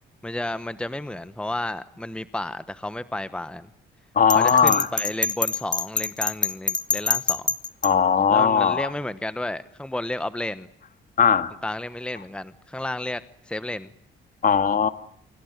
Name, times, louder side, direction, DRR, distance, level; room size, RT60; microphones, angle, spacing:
voice 1, 0.2-3.7 4.3-7.5 8.3-10.7 11.6-13.2 13.5-13.9, left 1 dB, 5° left, 14 dB, 1.1 m, -32 dB
voice 2, 4.2-4.9 7.8-8.9 11.2-11.5 14.4-14.9, left 6 dB, 45° left, 10 dB, 2.1 m, -19 dB
Bell, 4.3-7.9, left 4 dB, 20° left, 1.8 m, -25 dB
27.0 x 24.0 x 8.1 m, 0.67 s
cardioid pair, 90°, 20 cm